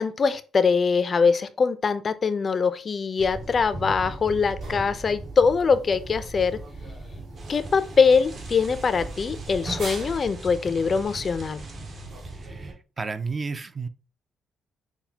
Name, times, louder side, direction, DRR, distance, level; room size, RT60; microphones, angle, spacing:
voice 1, 0.0-6.6 7.5-11.6, left 5 dB, 40° left, 0.4 m, -23 dB
sound 1, 3.2-12.7, right 2 dB, 70° right, 2.1 m, -38 dB
sound 2, 7.3-12.5, right 3 dB, 45° right, 1.0 m, -46 dB
voice 2, 12.2-13.9, right 4 dB, 30° right, 0.4 m, -33 dB
5.9 x 2.1 x 2.7 m
cardioid pair, 90°, 0 cm